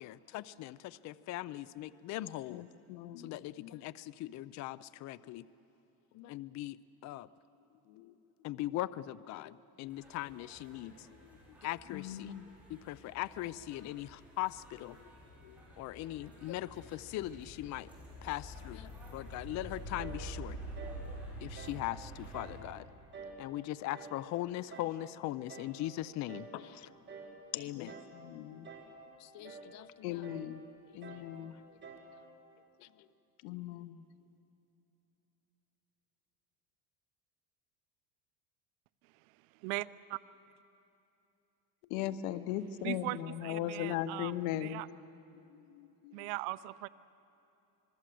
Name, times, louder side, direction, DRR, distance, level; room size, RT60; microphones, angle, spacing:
voice 1, 0.0-2.6 3.2-5.4 6.1-6.8 7.0-7.3 8.4-11.1 11.6-12.3 12.7-15.0 15.8-17.9 18.2-20.6 21.4-22.9 23.4-26.9 27.5-28.0 29.2-30.3 31.7-31.8 32.8-32.9, left 15 dB, 40° left, 18 dB, 0.5 m, -40 dB
voice 2, 2.5-3.3 7.9-8.1 11.9-12.4 15.4-15.6 27.7-28.7 30.0-30.6 30.9-31.5 33.4-34.0 41.9-44.8 45.7-46.3, left 12 dB, 85° left, 13 dB, 1.1 m, -39 dB
sound 1, 9.9-22.6, right 1 dB, 5° right, 7.3 m, -48 dB
sound 2, 20.0-20.3 20.8-21.0 21.6-21.8 22.3-22.6 23.1-23.4 23.9-24.2 24.7-25.0 25.5-25.8 26.3-26.6 27.1-27.4 27.9-28.2 28.6-29.0 29.4-29.7 30.2-30.5 31.0-31.3 31.8-32.1, right 4 dB, 25° right, 3.5 m, -49 dB
voice 3, 42.8-44.3 44.6-44.9 46.1-46.9, right 20 dB, 80° right, 17 dB, 0.7 m, -39 dB
26.0 x 21.5 x 7.6 m, 2.9 s
cardioid pair, 140°, 43 cm